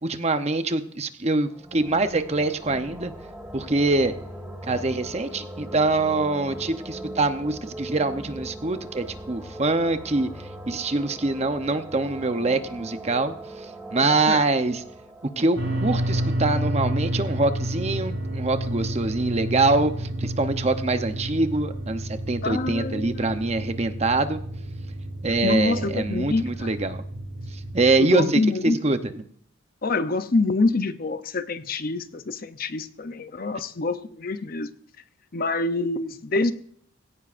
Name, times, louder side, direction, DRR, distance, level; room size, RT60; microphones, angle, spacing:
voice 1, 0.0-3.1 3.5-4.1 4.6-10.3 10.7-13.3 13.9-14.8 15.4-24.4 25.2-27.0 27.7-29.2, right 2 dB, 35° right, 0.8 m, -24 dB
sound 1, 1.5-17.0, right 1 dB, 10° right, 1.7 m, -40 dB
voice 2, 14.0-14.4 22.4-23.3 25.4-26.7 28.0-28.8 29.8-34.7 35.3-36.5, left 3 dB, 45° left, 0.6 m, -26 dB
sound 2, 15.6-27.9, right 1 dB, 75° right, 4.9 m, -30 dB
17.0 x 17.0 x 2.6 m
head